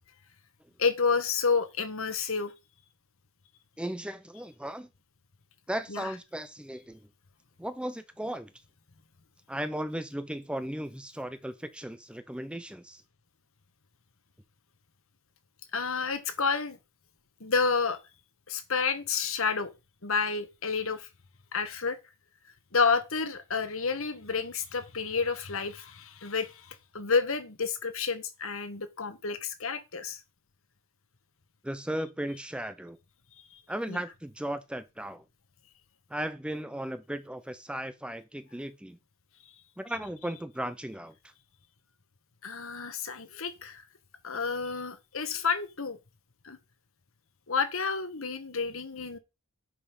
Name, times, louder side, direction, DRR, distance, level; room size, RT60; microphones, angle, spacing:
voice 1, 0.8-2.5 5.9-6.1 15.7-16.8 17.4-18.0 18.5-19.7 20.0-21.1 21.5-22.0 22.7-30.2 33.9-34.0 42.4-43.8 44.2-46.0 46.4-46.6 47.5-49.2, left 5 dB, 60° left, 1.5 m, -30 dB
voice 2, 3.8-4.9 5.7-7.0 7.6-8.5 9.5-13.0 31.6-33.0 33.7-35.2 36.1-39.0 39.8-41.3, right 1 dB, 5° right, 0.6 m, -36 dB
10.0 x 5.5 x 5.4 m
head